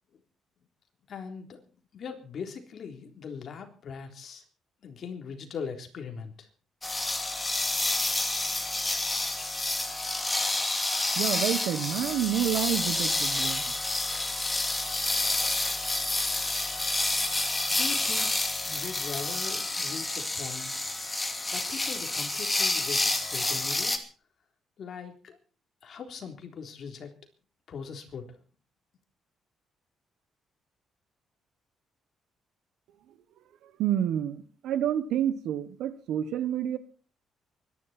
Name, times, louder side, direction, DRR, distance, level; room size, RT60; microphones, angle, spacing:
voice 1, 1.1-1.6 1.9-4.4 4.8-6.5 15.1-15.3 17.7-18.4 18.6-20.9 21.5-24.0 24.8-25.4 25.8-27.1 27.7-28.4, left 6 dB, 55° left, 4 dB, 3.7 m, -40 dB
sound 1, 6.8-24.0, left 2 dB, 15° left, 2.7 m, -29 dB
voice 2, 11.1-13.7 33.6-36.8, right 11 dB, 85° right, 13 dB, 1.4 m, -29 dB
24.0 x 11.0 x 4.5 m, 0.39 s
cardioid pair, 90°, 0 cm